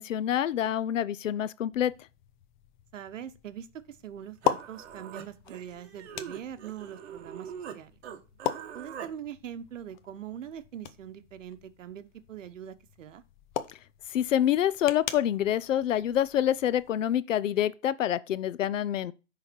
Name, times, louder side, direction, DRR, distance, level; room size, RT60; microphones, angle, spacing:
voice 1, 0.0-1.9 14.1-19.1, left 11 dB, 90° left, 0.7 m, -27 dB
sound 1, 1.7-16.9, left 11 dB, 40° left, 0.8 m, -40 dB
voice 2, 2.9-7.9 8.7-13.2, right 9 dB, 85° right, 1.1 m, -42 dB
Human voice, 4.1-4.2 4.4-7.8 8.0-9.1, right 8 dB, 60° right, 1.5 m, -43 dB
10.5 x 4.1 x 4.5 m
hypercardioid pair, 155°, 37 cm